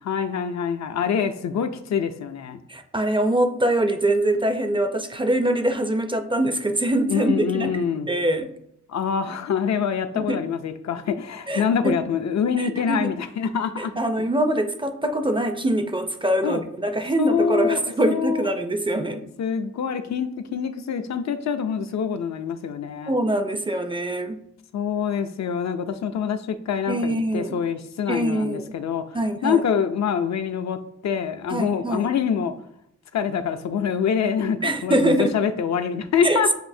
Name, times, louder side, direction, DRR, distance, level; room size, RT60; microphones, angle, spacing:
voice 1, 0.0-2.6 7.1-8.1 8.9-13.9 16.4-16.6 17.2-18.5 19.4-23.1 24.7-29.2 29.4-32.5 33.1-36.6, left 7 dB, 65° left, 9 dB, 0.4 m, -25 dB
voice 2, 2.7-7.8 8.1-8.5 10.2-10.4 11.5-11.9 12.6-13.1 13.8-19.2 23.1-24.4 26.9-27.6 28.1-28.8 29.1-29.6 31.5-32.1 34.6-35.4 36.2-36.6, right 1 dB, 15° right, 7 dB, 0.4 m, -23 dB
7.5 x 2.6 x 2.6 m, 0.73 s
cardioid pair, 85°, 30 cm